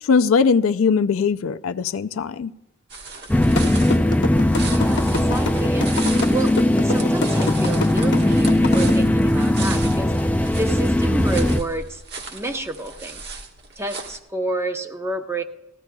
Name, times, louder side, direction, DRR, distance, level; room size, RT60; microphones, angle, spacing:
voice 1, 0.0-2.5, left 5 dB, 75° left, 0.4 m, -20 dB
sound 1, 2.9-14.2, right 4 dB, 55° right, 1.4 m, -36 dB
sound 2, 3.3-11.6, left 1 dB, 5° left, 0.3 m, -19 dB
sound 3, 3.6-8.9, left 2 dB, 60° left, 0.9 m, -25 dB
voice 2, 4.6-6.0 6.3-6.6 6.8-10.1 10.5-12.0 12.3-13.3 13.8-15.4, right 2 dB, 15° right, 0.7 m, -29 dB
19.0 x 14.5 x 2.3 m
head